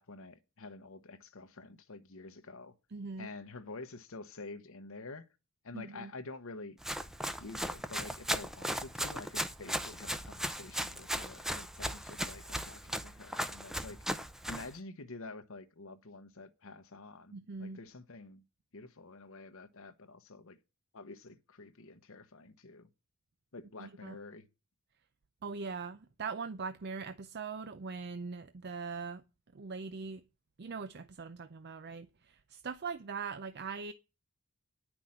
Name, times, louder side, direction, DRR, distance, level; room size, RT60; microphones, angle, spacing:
voice 1, 0.0-2.7 3.2-5.3 5.6-6.8 7.4-14.0 14.5-18.4 18.7-20.6 20.9-22.9 23.5-24.5, left 3 dB, 65° left, 1.1 m, -48 dB
voice 2, 2.9-3.3 5.7-6.1 17.3-17.8 23.8-24.2 25.4-29.2 29.5-30.2 30.6-33.9, right 5 dB, 50° right, 0.6 m, -41 dB
Run, 6.8-14.7, equal, ahead, 0.7 m, -37 dB
9.9 x 6.2 x 8.7 m
head